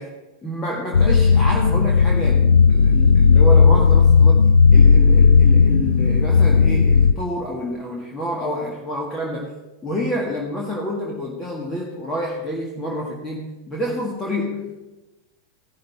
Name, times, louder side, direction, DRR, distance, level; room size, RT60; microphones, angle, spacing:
voice 1, 0.4-4.4 4.7-9.5 9.8-14.7, equal, 15° left, -2 dB, 1.9 m, -28 dB
sound 1, 0.9-7.1, left 5 dB, 75° left, 0.4 m, -14 dB
16.0 x 11.5 x 3.6 m, 1.0 s
figure-of-eight pair, 90°, 0 cm